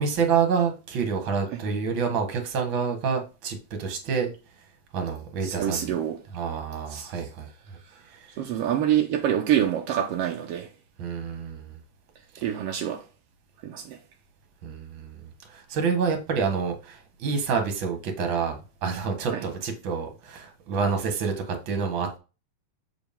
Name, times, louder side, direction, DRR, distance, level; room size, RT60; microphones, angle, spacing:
voice 1, 0.0-4.3 4.9-5.9 6.3-7.5 8.1-8.3 11.0-11.8 14.6-22.2, right 5 dB, 50° right, 1.8 m, -28 dB
voice 2, 5.4-6.2 6.9-7.1 8.4-10.7 12.4-13.0 13.6-14.0 19.3-19.4, right 10 dB, 75° right, 1.4 m, -26 dB
7.0 x 5.1 x 3.6 m
omnidirectional pair, 3.5 m